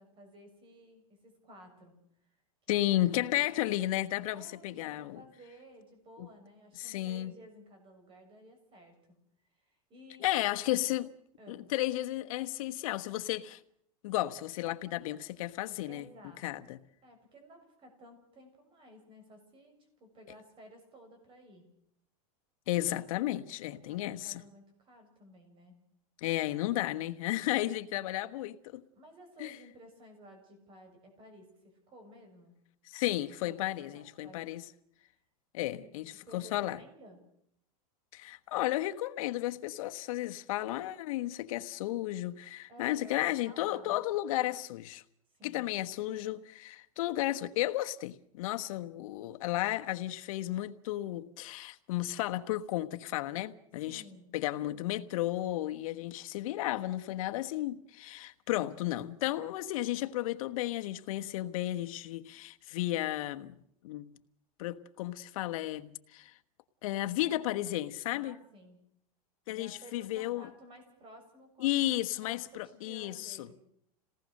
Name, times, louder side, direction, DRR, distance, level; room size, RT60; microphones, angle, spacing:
voice 1, 0.0-1.9 2.2-2.3 2.7-2.8 3.3-3.5 4.2-9.0 9.5-10.4 11.4-11.7 15.9-16.7 17.0-21.6 23.7-25.8 28.9-32.6 33.4-34.5 35.6-35.9 36.2-37.2 42.7-43.9 45.3-45.7 53.8-54.3 67.2-67.8 68.1-68.8 69.5-71.7 72.1-73.6, equal, 25° right, 6.8 m, -55 dB
voice 2, 2.7-5.2 6.2-6.3 6.8-7.3 10.2-11.1 11.5-13.6 14.0-16.0 16.4-16.8 22.7-24.4 26.2-28.8 29.4-29.6 32.9-34.6 35.5-36.0 36.3-36.8 38.1-45.0 45.4-54.0 54.3-63.5 63.8-64.1 64.6-66.3 66.8-68.3 69.5-70.5 71.6-73.4, left 15 dB, 65° left, 1.3 m, -33 dB
28.0 x 18.5 x 6.6 m
supercardioid pair, 150°, 19 cm